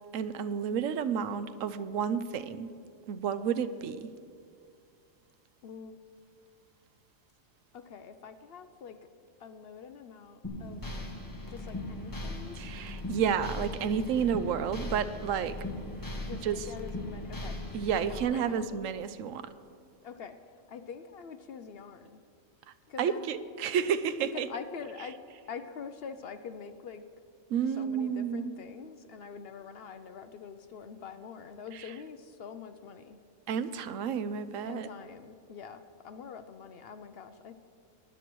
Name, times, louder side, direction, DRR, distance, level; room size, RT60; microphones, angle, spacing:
voice 1, 0.1-2.7 3.1-4.1 12.6-15.5 16.4-16.6 17.7-19.4 23.0-24.5 27.5-28.5 33.5-34.9, right 7 dB, 90° right, 12 dB, 1.0 m, -31 dB
voice 2, 5.6-6.0 7.7-9.0 9.4-10.8 11.5-12.6 16.2-17.6 18.0-18.7 20.0-20.4 20.7-22.2 22.9-23.3 24.3-25.2 25.5-27.0 27.6-33.2 34.6-37.5, left 6 dB, 60° left, 9 dB, 0.7 m, -45 dB
sound 1, 10.4-18.2, left 2 dB, 15° left, 1.4 m, -39 dB
19.0 x 10.0 x 3.1 m, 2.2 s
omnidirectional pair, 1.3 m